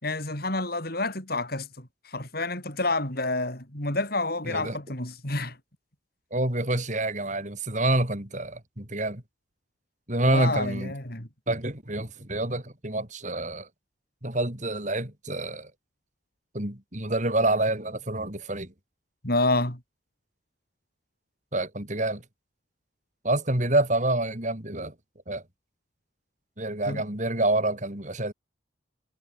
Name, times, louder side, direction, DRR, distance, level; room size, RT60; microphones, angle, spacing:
voice 1, 0.0-5.6 10.3-11.3 19.2-19.8 26.9-27.0, left 2 dB, 50° left, 5.6 m, -29 dB
voice 2, 4.4-4.8 6.3-9.2 10.1-10.9 11.5-13.7 14.2-15.7 16.5-18.7 21.5-22.2 23.2-24.9 25.3-25.4 26.6-28.3, right 2 dB, 40° right, 3.9 m, -27 dB
head